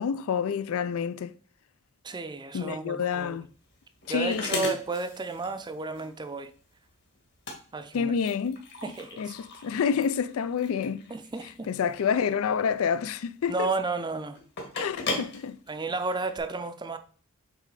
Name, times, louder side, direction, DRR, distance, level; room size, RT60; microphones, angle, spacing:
voice 1, 0.0-1.4 2.5-3.5 4.1-4.7 7.9-8.6 9.2-11.0 11.7-13.7 14.7-15.6, left 7 dB, 75° left, 0.4 m, -28 dB
voice 2, 2.0-3.4 4.1-6.5 7.7-8.1 8.8-9.3 11.1-11.7 13.5-14.4 15.7-17.0, right 3 dB, 20° right, 0.5 m, -32 dB
sound 1, 3.1-16.4, left 3 dB, 50° left, 1.7 m, -39 dB
7.6 x 3.2 x 4.8 m
head